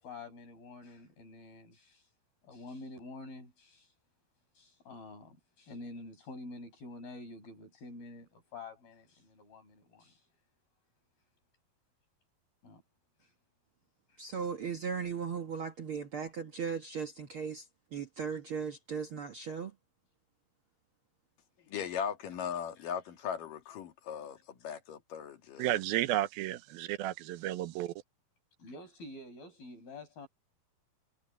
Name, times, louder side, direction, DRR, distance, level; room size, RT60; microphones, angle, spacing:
voice 1, 0.0-2.1 2.4-3.9 4.5-10.2 12.6-12.8 13.2-13.3 14.1-14.2 22.8-22.9 28.6-30.3, left 2 dB, 85° left, 9.7 m, -48 dB
voice 2, 14.2-17.7 17.9-19.7, right 6 dB, 55° right, 1.5 m, -37 dB
voice 3, 21.7-25.8, left 8 dB, 65° left, 3.7 m, -38 dB
voice 4, 25.6-27.9, right 14 dB, 90° right, 2.7 m, -32 dB
omnidirectional pair, 4.2 m